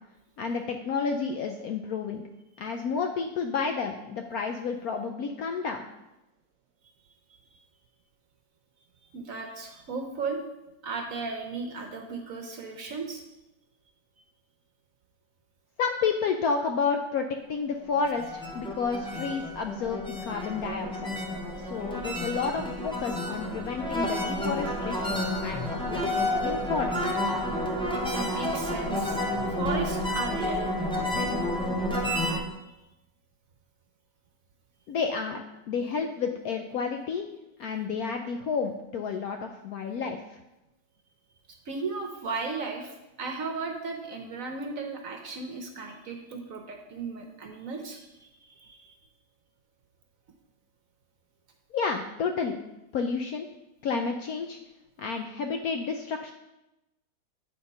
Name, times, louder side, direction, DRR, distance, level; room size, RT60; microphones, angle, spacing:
voice 1, 0.4-2.2 2.6-5.8 15.8-20.9 21.5-27.1 34.9-37.3 37.6-40.2 51.7-52.6 52.9-53.5 53.8-54.6 55.0-56.3, left 5 dB, 70° left, 5 dB, 0.9 m, -31 dB
voice 2, 9.0-10.4 10.8-13.2 28.0-29.2 29.5-31.4 41.5-48.9, right 4 dB, 60° right, 4 dB, 1.0 m, -36 dB
sound 1, 18.0-32.4, left 1 dB, 5° left, 0.5 m, -30 dB
8.8 x 4.3 x 5.4 m, 0.97 s
omnidirectional pair, 2.0 m